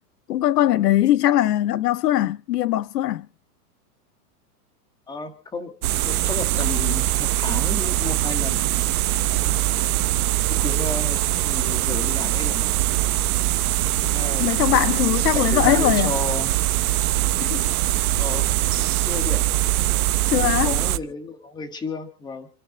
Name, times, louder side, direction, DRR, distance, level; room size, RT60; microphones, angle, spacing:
voice 1, 0.3-3.3 14.4-16.1 17.4-17.7 20.3-20.8, left 13 dB, 80° left, 0.9 m, -21 dB
voice 2, 5.1-5.7 6.1-8.7 9.3-9.9 10.5-12.7 14.0-16.5 18.1-18.5 19.0-19.4 20.4-22.5, left 4 dB, 10° left, 1.6 m, -33 dB
sound 1, 5.8-21.0, right 16 dB, 65° right, 1.1 m, -22 dB
29.0 x 10.5 x 3.9 m
supercardioid pair, 165°, 47 cm